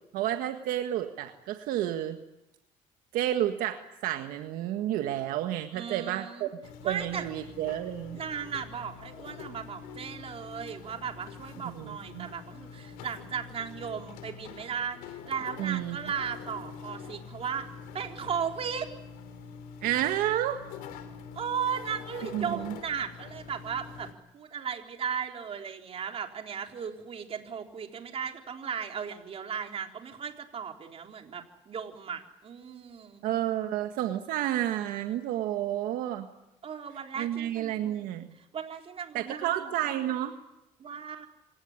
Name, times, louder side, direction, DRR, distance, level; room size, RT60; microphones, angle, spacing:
voice 1, 0.1-2.2 3.1-6.5 6.8-8.2 11.6-12.3 15.6-16.0 19.8-20.6 22.3-22.7 33.2-36.3 37.2-38.3 39.1-40.4, right 12 dB, 80° right, 6 dB, 1.8 m, -30 dB
voice 2, 5.7-6.5 6.8-7.3 8.1-17.7 17.9-18.9 21.3-33.2 36.6-38.0 38.4-40.2 40.8-41.3, right 7 dB, 45° right, 4 dB, 4.0 m, -36 dB
sound 1, 6.6-24.1, left 6 dB, 85° left, 3.0 m, -45 dB
26.5 x 17.0 x 9.9 m, 0.90 s
cardioid pair, 100°, 14 cm